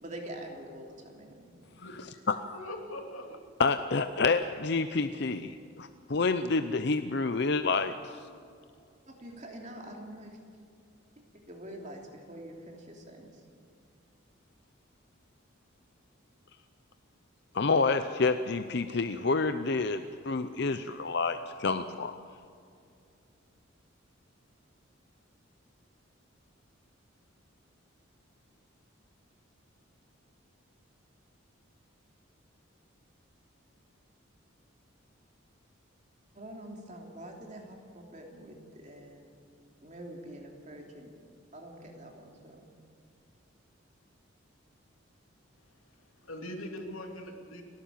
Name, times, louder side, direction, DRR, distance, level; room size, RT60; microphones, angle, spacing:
voice 1, 0.0-1.6 9.1-10.4 11.5-13.4 36.3-39.4 39.8-41.1 41.5-42.7, right 1 dB, 35° right, 1 dB, 3.0 m, -45 dB
voice 2, 1.8-2.2 2.5-3.4 46.2-47.6, left 1 dB, 90° left, 2 dB, 3.0 m, -42 dB
voice 3, 3.6-8.2 17.5-22.1, left 4 dB, 55° left, 9 dB, 0.6 m, -28 dB
30.0 x 12.0 x 7.5 m, 2.4 s
head